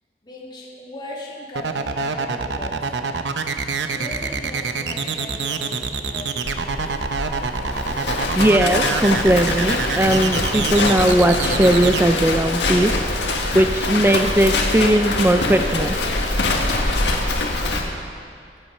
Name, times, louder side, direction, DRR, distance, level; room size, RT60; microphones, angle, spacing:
voice 1, 0.2-3.2 3.5-6.9, left 1 dB, 25° left, -5 dB, 2.4 m, -38 dB
sound 1, 1.5-12.0, right 5 dB, 90° right, 0.8 m, -26 dB
Livestock farm animals working animals, 6.4-17.8, left 2 dB, 80° left, 1.8 m, -23 dB
voice 2, 8.4-12.9 13.5-16.0, right 1 dB, 15° right, 7 dB, 0.5 m, -18 dB
23.0 x 8.9 x 5.4 m, 2.2 s
head